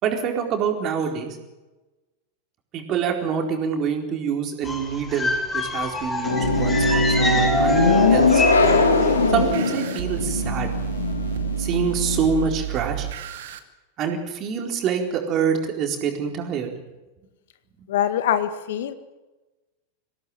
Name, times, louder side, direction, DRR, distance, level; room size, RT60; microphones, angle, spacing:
voice 1, 0.0-1.4 2.7-7.8 8.1-8.8 9.3-10.7 11.6-13.1 14.0-16.7, right 7 dB, 35° right, 3 dB, 4.4 m, -26 dB
sound 1, 4.6-9.1 9.4-9.6, left 1 dB, 15° left, 6.4 m, -26 dB
sound 2, 6.2-12.5, left 4 dB, 75° left, 3.6 m, -21 dB
sound 3, 6.4-13.6, right 13 dB, 55° right, 2.2 m, -30 dB
voice 2, 17.9-18.9, left 10 dB, 55° left, 11 dB, 1.8 m, -23 dB
25.0 x 17.5 x 9.2 m, 1.1 s
figure-of-eight pair, 90°, 0 cm